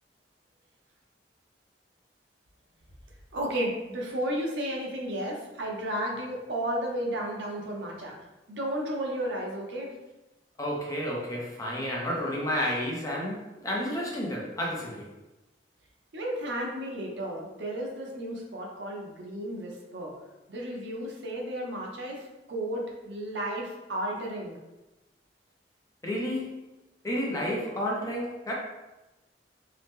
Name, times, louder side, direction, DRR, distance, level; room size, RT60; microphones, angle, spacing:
voice 1, 3.3-8.2 8.5-9.9 16.1-20.1 20.5-24.6, right 1 dB, 75° right, -1 dB, 0.6 m, -33 dB
voice 2, 10.6-15.1 26.0-26.6 27.0-28.5, equal, 20° left, -3 dB, 0.6 m, -31 dB
2.7 x 2.0 x 3.5 m, 1.0 s
head